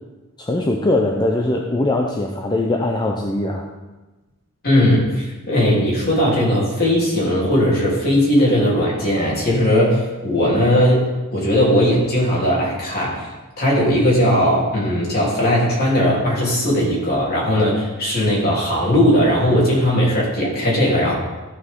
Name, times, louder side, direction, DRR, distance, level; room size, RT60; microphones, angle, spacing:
voice 1, 0.4-3.7, left 2 dB, 20° left, 0 dB, 0.6 m, -21 dB
voice 2, 4.6-13.3 13.6-21.1, equal, 45° left, -5 dB, 3.4 m, -18 dB
14.0 x 6.2 x 3.8 m, 1.1 s
head